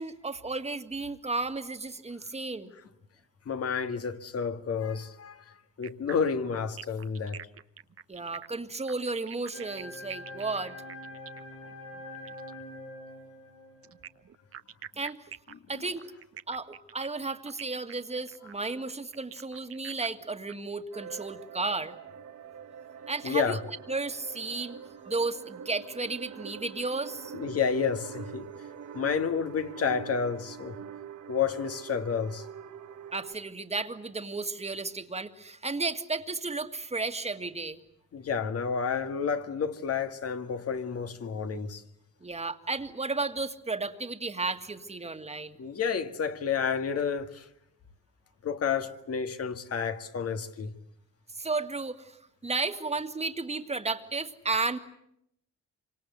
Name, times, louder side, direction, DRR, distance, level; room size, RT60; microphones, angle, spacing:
voice 1, 0.0-2.7 8.1-10.7 15.0-15.2 15.7-16.1 16.5-21.9 23.1-23.6 23.9-24.8 25.0-27.3 33.1-37.8 42.2-45.6 51.4-52.2 52.4-54.8, right 3 dB, 20° right, 2.0 m, -33 dB
voice 2, 3.5-7.5 15.7-15.9 23.2-23.6 27.3-28.5 28.9-30.8 31.3-32.5 38.1-41.8 45.6-47.5 48.4-50.8, left 6 dB, 50° left, 2.0 m, -30 dB
sound 1, 5.8-12.6 13.8-20.5, right 8 dB, 50° right, 1.0 m, -46 dB
sound 2, 9.5-14.0, left 1 dB, 90° left, 7.9 m, -44 dB
sound 3, 20.9-33.3, right 8 dB, 65° right, 1.5 m, -44 dB
27.0 x 25.5 x 8.0 m
cardioid pair, 90°, 30 cm